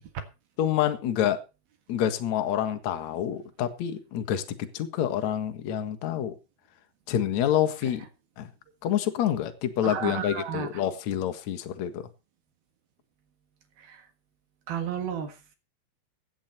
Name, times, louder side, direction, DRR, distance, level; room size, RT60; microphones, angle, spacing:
voice 1, 0.6-1.4 1.9-6.3 7.1-8.0 8.4-8.5 8.8-12.1, left 10 dB, 55° left, 2.3 m, -27 dB
voice 2, 9.8-10.7 13.8-14.0 14.7-15.3, right 8 dB, 65° right, 3.3 m, -32 dB
16.0 x 11.0 x 4.3 m
omnidirectional pair, 4.9 m